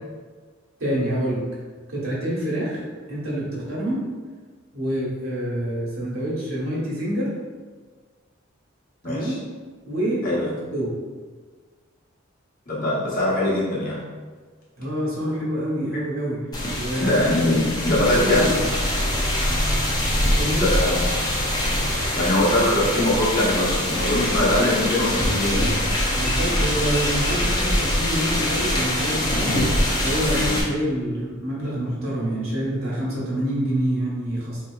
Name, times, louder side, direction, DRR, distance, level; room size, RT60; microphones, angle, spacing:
voice 1, 0.8-1.4 1.9-2.8 3.1-4.0 4.7-7.3 9.0-9.3 9.8-10.3 10.7-11.0 14.8-16.4 16.7-17.2 18.2-18.6 20.3-20.7 26.1-29.5 30.0-34.6, equal, 85° right, -6 dB, 1.1 m, -26 dB
voice 2, 9.0-9.3 10.2-10.5 12.7-14.0 17.0-18.5 20.6-21.0 22.1-25.6 30.3-30.5, left 1 dB, 45° left, -7 dB, 1.0 m, -22 dB
sound 1, 16.5-30.6, left 1 dB, 20° left, 0.5 m, -23 dB
3.9 x 2.8 x 2.3 m, 1.4 s
head